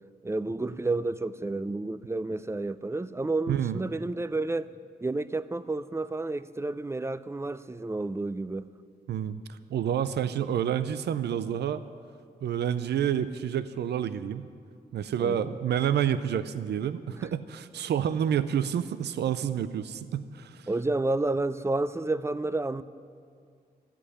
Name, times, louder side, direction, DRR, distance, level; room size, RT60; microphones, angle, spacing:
voice 1, 0.2-4.7 5.0-8.7 15.2-15.6 17.1-17.2 20.7-22.8, right 2 dB, 15° right, 0.5 m, -30 dB
voice 2, 3.5-3.8 9.1-11.8 12.4-14.5 14.9-20.7, right 9 dB, 85° right, 0.5 m, -29 dB
13.5 x 8.2 x 9.9 m
cardioid pair, 75°, 17 cm